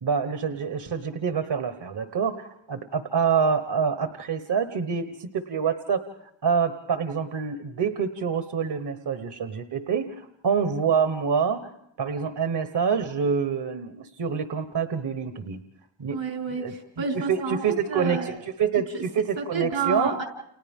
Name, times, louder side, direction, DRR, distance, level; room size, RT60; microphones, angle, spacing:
voice 1, 0.0-11.7 12.0-15.6 16.0-16.2 16.5-16.7 17.1-20.1, right 6 dB, 65° right, 8 dB, 1.2 m, -26 dB
voice 2, 16.1-18.3 18.7-19.0 19.4-20.2, right 5 dB, 90° right, 0 dB, 5.0 m, -30 dB
30.0 x 30.0 x 3.7 m, 0.74 s
cardioid pair, 60°, 44 cm